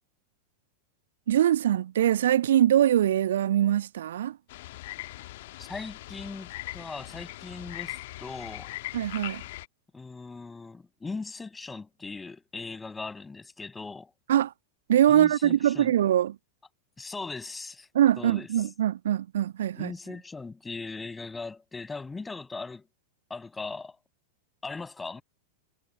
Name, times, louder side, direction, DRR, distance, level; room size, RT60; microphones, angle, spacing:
voice 1, 1.3-4.4 8.9-9.4 14.3-14.5 14.9-16.4 17.9-19.9, right 11 dB, 60° right, 1.4 m, -23 dB
sound 1, 4.5-9.7, left 17 dB, 55° left, 1.4 m, -40 dB
voice 2, 5.6-8.7 9.9-14.1 15.1-15.9 17.0-17.9 18.2-18.5 19.8-22.9 23.3-24.0 24.6-25.2, left 4 dB, 10° left, 6.4 m, -39 dB
figure-of-eight pair, 90°, 0 cm